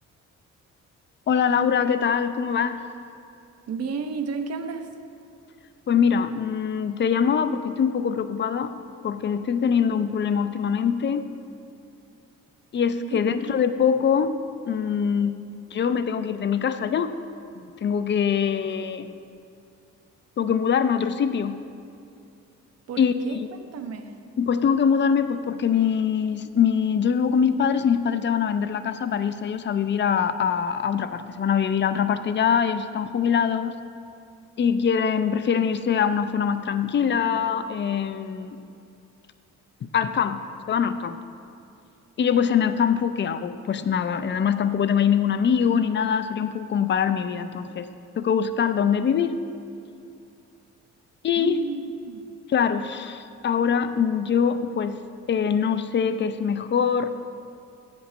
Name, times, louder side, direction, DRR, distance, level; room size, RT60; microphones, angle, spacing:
voice 1, 1.3-2.8 5.9-8.7 9.0-11.2 12.7-14.3 14.7-15.4 15.7-17.1 17.6-19.2 20.4-21.6 23.0-23.4 24.4-33.8 34.6-38.6 39.8-40.4 40.7-41.2 42.2-47.9 48.2-49.3 51.2-51.6 52.5-55.0 55.3-57.1, left 7 dB, 40° left, 11 dB, 0.5 m, -23 dB
voice 2, 3.7-4.9 13.0-13.2 13.5-13.6 22.9-24.2 51.4-52.3, right 5 dB, 55° right, 7 dB, 0.7 m, -33 dB
7.8 x 5.3 x 6.1 m, 2.6 s
cardioid pair, 90°, 30 cm